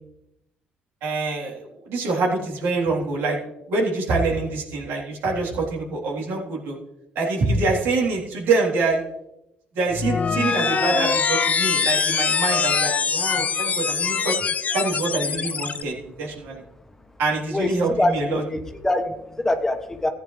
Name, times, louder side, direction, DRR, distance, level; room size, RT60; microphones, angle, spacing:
voice 1, 1.0-3.4 3.7-6.8 7.2-9.0 9.7-14.4 14.7-16.6 17.2-18.4, right 3 dB, 80° right, -3 dB, 3.6 m, -25 dB
sound 1, 9.9-15.8, left 6 dB, 40° left, 0.6 m, -23 dB
voice 2, 17.5-20.1, left 1 dB, 10° left, 5 dB, 1.3 m, -24 dB
14.5 x 9.2 x 3.3 m, 0.86 s
supercardioid pair, 75°, 4 cm